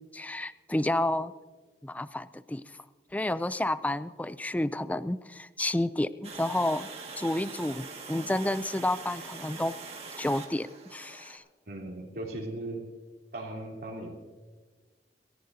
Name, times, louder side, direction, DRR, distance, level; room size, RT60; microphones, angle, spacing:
voice 1, 0.1-1.3 1.8-2.6 3.1-6.9 7.2-9.8 10.2-11.4, left 1 dB, 10° left, 15 dB, 0.3 m, -30 dB
Water, 6.2-11.4, right 4 dB, 35° right, 1.9 m, -43 dB
voice 2, 11.7-12.9 13.3-14.1, right 2 dB, 55° right, -1 dB, 3.2 m, -37 dB
28.0 x 14.5 x 2.7 m, 1.3 s
head